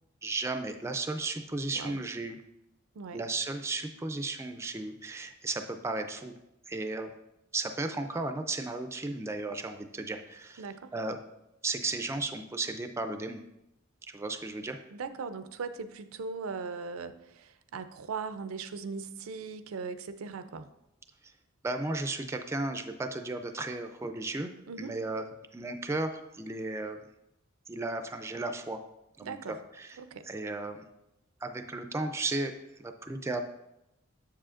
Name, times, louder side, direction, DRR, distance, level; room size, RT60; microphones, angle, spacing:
voice 1, 0.2-2.4 3.1-6.3 6.7-7.1 7.5-10.6 10.9-11.2 11.6-13.4 14.1-14.8 21.2-21.3 21.6-24.5 24.8-25.2 25.5-27.0 27.7-28.8 29.2-29.4 29.8-30.0 30.2-30.9 31.4-32.5 32.8-33.4, right 2 dB, 15° right, 7 dB, 0.3 m, -34 dB
voice 2, 10.6-10.9 14.9-20.7 24.7-25.0 29.2-29.6 30.0-30.3, right 5 dB, 85° right, 11 dB, 0.5 m, -39 dB
7.4 x 7.0 x 2.5 m, 0.88 s
head